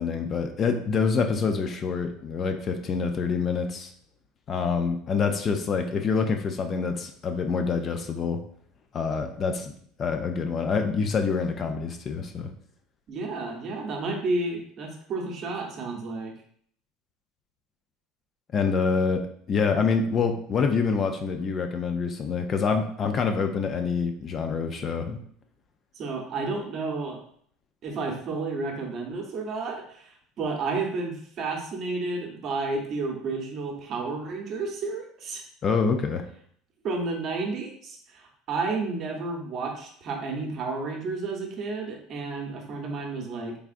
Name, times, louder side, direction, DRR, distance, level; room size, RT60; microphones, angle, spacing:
voice 1, 0.0-3.9 4.5-8.4 8.9-9.7 10.0-12.5 18.5-25.2 35.6-36.2, left 5 dB, 35° left, 6 dB, 0.4 m, -26 dB
voice 2, 13.1-16.3 26.0-27.2 27.8-35.4 36.8-43.6, right 3 dB, 45° right, 2 dB, 0.8 m, -31 dB
3.5 x 3.4 x 2.5 m, 0.62 s
supercardioid pair, 110°, 0 cm